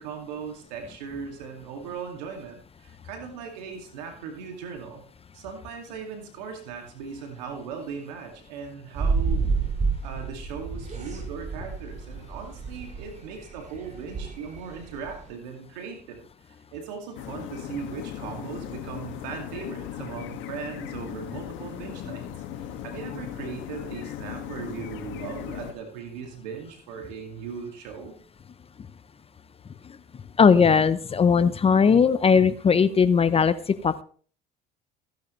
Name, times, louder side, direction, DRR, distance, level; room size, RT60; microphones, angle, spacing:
voice 1, 0.0-5.0 5.3-9.6 10.0-22.3 22.6-28.1, right 6 dB, 85° right, 4 dB, 2.4 m, -38 dB
sound 1, 9.0-15.3, right 4 dB, 35° right, 5.5 m, -29 dB
sound 2, 17.2-25.7, left 11 dB, 65° left, 1.9 m, -37 dB
voice 2, 30.4-34.0, left 6 dB, 30° left, 14 dB, 0.7 m, -19 dB
15.5 x 10.5 x 3.2 m, 0.44 s
supercardioid pair, 80°, 21 cm